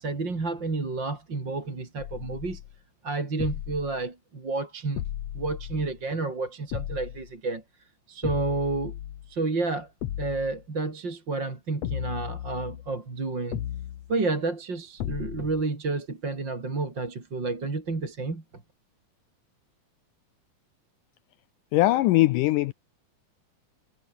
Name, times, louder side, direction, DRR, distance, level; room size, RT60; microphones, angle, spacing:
voice 1, 0.0-2.6 3.0-5.0 5.3-9.0 9.3-9.9 10.2-13.6 14.1-18.4, right 3 dB, 30° right, 4.5 m, -30 dB
sound 1, 2.0-2.8 3.4-4.0 4.9-6.0 6.7-7.3 8.2-9.3 10.0-10.6 11.8-12.9 13.5-14.1 15.0-15.6, left 12 dB, 60° left, 1.9 m, -35 dB
voice 2, 21.7-22.7, left 17 dB, 80° left, 1.9 m, -21 dB
omnidirectional pair, 4.3 m